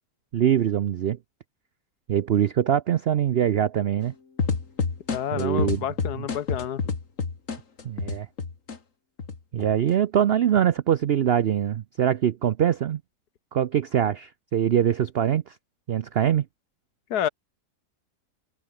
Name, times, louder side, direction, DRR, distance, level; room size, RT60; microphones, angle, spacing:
voice 1, 0.3-1.2 2.1-4.1 5.3-5.8 7.8-8.3 9.5-13.0 13.5-15.5 15.9-16.4, right 10 dB, 80° right, 0.5 m, -23 dB
sound 1, 4.4-8.8 9.2-9.9, left 5 dB, 50° left, 2.5 m, -28 dB
voice 2, 5.1-6.9 17.1-17.3, left 10 dB, 75° left, 1.5 m, -29 dB
omnidirectional pair, 1.8 m